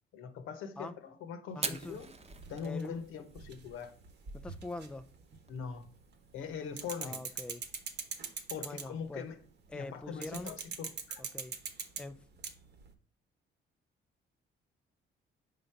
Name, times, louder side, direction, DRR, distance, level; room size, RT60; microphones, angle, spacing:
voice 1, 0.1-2.1 2.5-3.9 5.5-5.8 6.3-7.2 8.5-9.4 9.7-11.2, left 6 dB, 85° left, 1.0 m, -42 dB
Fire, 1.5-10.7, right 4 dB, 30° right, 0.8 m, -48 dB
voice 2, 1.6-2.0 2.6-3.0 4.3-5.1 7.0-7.6 8.6-9.3 9.7-10.6 11.2-11.5 12.0-12.2, left 2 dB, 5° left, 0.4 m, -43 dB
sound 1, 1.7-5.9 6.1-9.1 10.2-12.9, right 6 dB, 60° right, 1.1 m, -43 dB
5.1 x 3.9 x 5.7 m
cardioid pair, 90°, 20 cm